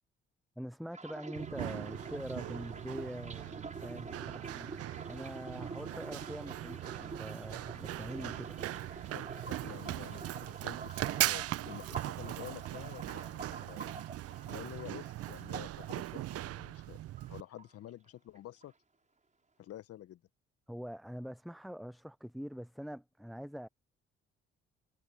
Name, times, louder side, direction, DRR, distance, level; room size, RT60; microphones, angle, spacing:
voice 1, 0.6-8.6 20.7-23.7, equal, ahead, 0.6 m, -44 dB
sound 1, 0.9-16.9 17.2-18.1 18.3-18.7, right 3 dB, 25° right, 4.5 m, -48 dB
Run, 1.4-17.4, right 15 dB, 55° right, 1.2 m, -40 dB
voice 2, 9.1-13.9 14.3-17.0 17.3-18.7 19.6-20.2, left 13 dB, 55° left, 1.7 m, -49 dB
figure-of-eight pair, 45°, 29 cm